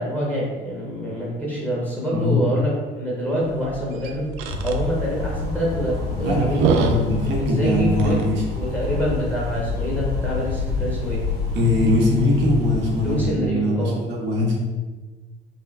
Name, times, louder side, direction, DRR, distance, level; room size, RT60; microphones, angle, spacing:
voice 1, 0.0-4.4 4.6-6.9 7.4-8.2 8.6-11.2 13.0-14.0, equal, 5° left, -5 dB, 1.1 m, -26 dB
voice 2, 2.1-2.5 6.2-8.4 11.5-14.6, left 1 dB, 35° right, -2 dB, 0.8 m, -21 dB
sound 1, 3.4-8.5, right 5 dB, 60° right, 0.5 m, -28 dB
sound 2, 4.4-13.3, left 4 dB, 85° left, 1.1 m, -28 dB
4.1 x 2.9 x 2.5 m, 1.3 s
figure-of-eight pair, 55°, 30 cm